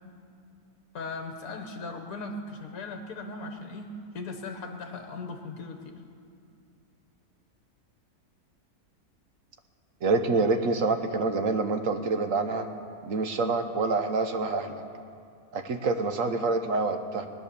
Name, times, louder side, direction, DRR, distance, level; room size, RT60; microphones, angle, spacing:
voice 1, 0.9-6.0, left 3 dB, 65° left, 4 dB, 1.4 m, -38 dB
voice 2, 10.0-12.7 13.0-14.7 15.5-17.3, right 3 dB, 60° right, 7 dB, 1.2 m, -26 dB
20.0 x 9.9 x 6.8 m, 2.4 s
omnidirectional pair, 1.7 m